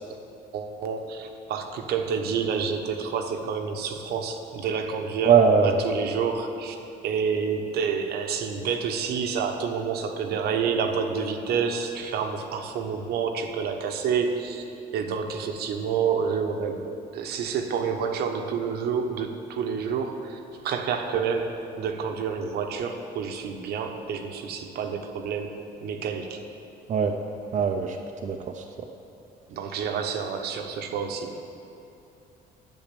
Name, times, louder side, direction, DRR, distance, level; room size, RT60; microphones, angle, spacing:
voice 1, 0.5-5.3 5.6-6.8 7.0-14.6 14.9-16.8 17.1-20.4 20.6-25.5 25.8-26.4 29.5-31.4, right 6 dB, 70° right, 4 dB, 1.0 m, -28 dB
voice 2, 5.2-5.8 26.9-27.1 27.5-28.0 28.2-28.6, right 6 dB, 45° right, 3 dB, 0.6 m, -20 dB
8.9 x 6.4 x 8.5 m, 2.7 s
cardioid pair, 110°, 17 cm